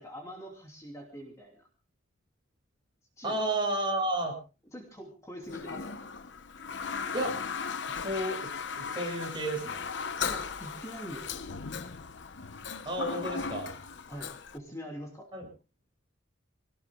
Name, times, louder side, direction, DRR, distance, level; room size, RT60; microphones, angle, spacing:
voice 1, 0.0-1.7 3.2-3.4 4.7-5.9 10.2-11.9 14.1-15.3, equal, 15° left, 0 dB, 3.0 m, -44 dB
voice 2, 3.2-4.4 7.1-7.4 7.9-9.8 12.8-13.7 15.3-15.5, right 1 dB, 25° right, 0 dB, 7.6 m, -32 dB
Toilet flush, 5.5-14.6, left 5 dB, 65° left, 0.8 m, -37 dB
27.0 x 19.0 x 2.3 m, 0.33 s
head